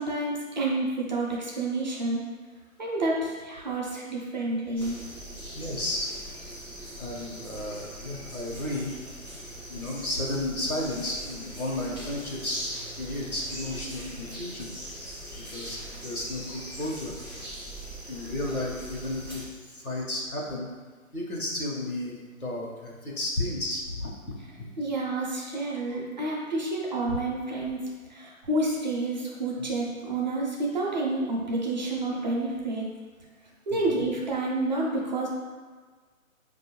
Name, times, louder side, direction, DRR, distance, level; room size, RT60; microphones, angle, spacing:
voice 1, 0.0-2.2 2.8-5.0 24.8-27.8 28.1-32.9 33.7-35.3, right 2 dB, 35° right, -4 dB, 0.5 m, -29 dB
sound 1, 4.8-19.5, right 1 dB, 15° left, 0.5 m, -41 dB
voice 2, 5.5-6.1 7.0-8.9 9.7-12.6 12.9-14.7 15.5-17.2 18.1-20.7 21.1-24.7 27.1-27.2 33.7-34.1, left 1 dB, 90° left, -2 dB, 1.1 m, -33 dB
4.8 x 2.6 x 3.0 m, 1.5 s
figure-of-eight pair, 135°, 42 cm